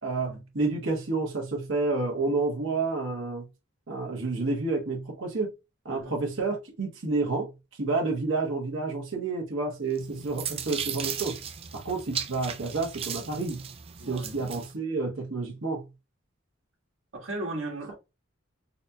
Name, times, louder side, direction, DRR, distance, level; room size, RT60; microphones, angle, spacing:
voice 1, 0.0-3.5 3.9-5.5 5.8-7.5 7.8-11.4 11.7-13.7 14.1-15.9, right 3 dB, 65° right, 1.1 m, -29 dB
sound 1, 10.0-14.7, right 8 dB, 30° right, 0.3 m, -36 dB
voice 2, 14.0-14.4 17.1-18.0, right 2 dB, 85° right, 1.5 m, -37 dB
4.1 x 2.8 x 2.2 m
head